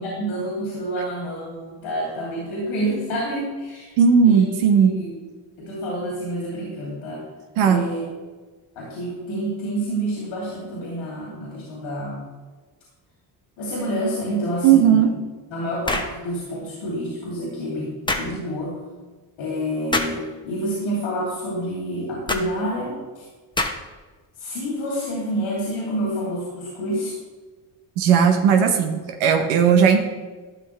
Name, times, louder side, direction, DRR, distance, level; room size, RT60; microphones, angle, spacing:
voice 1, 0.0-3.9 4.2-5.2 5.6-7.2 7.6-8.0 8.7-12.2 13.6-15.1 15.5-18.8 19.4-23.2 24.4-27.2, right 1 dB, 75° left, -5 dB, 3.0 m, -28 dB
voice 2, 4.0-5.0 7.6-7.8 14.6-15.1 28.0-30.0, right 7 dB, 80° right, 5 dB, 1.0 m, -16 dB
sound 1, 15.9-16.2 18.1-18.3 19.9-20.2 22.3-22.5 23.6-24.0, left 2 dB, 10° left, 1.0 m, -25 dB
12.5 x 5.9 x 3.3 m, 1.3 s
supercardioid pair, 65°, 49 cm